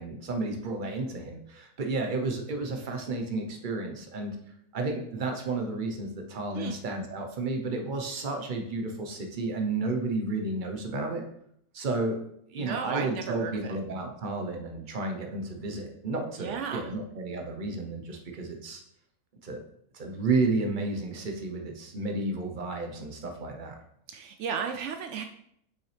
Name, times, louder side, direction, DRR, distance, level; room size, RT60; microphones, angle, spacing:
voice 1, 0.0-4.4 4.7-11.3 11.7-12.2 12.5-18.8 19.4-19.6 19.9-23.7, right 3 dB, 40° right, 3 dB, 0.8 m, -32 dB
voice 2, 12.6-13.8 16.4-16.8 24.1-25.2, right 7 dB, 80° right, 5 dB, 0.6 m, -34 dB
6.8 x 5.7 x 3.3 m, 0.72 s
omnidirectional pair, 1.8 m